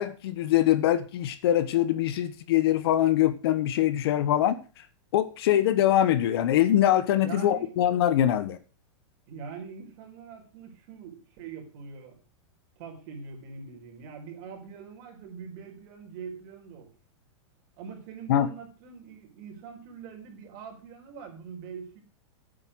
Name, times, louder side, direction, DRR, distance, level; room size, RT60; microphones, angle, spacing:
voice 1, 0.0-4.6 5.1-8.6 18.3-18.5, left 12 dB, 50° left, 1.1 m, -23 dB
voice 2, 7.2-7.7 9.3-12.2 12.8-16.9 17.8-22.0, right 6 dB, 35° right, 4.6 m, -43 dB
11.0 x 9.0 x 6.3 m
supercardioid pair, 170°, 16 cm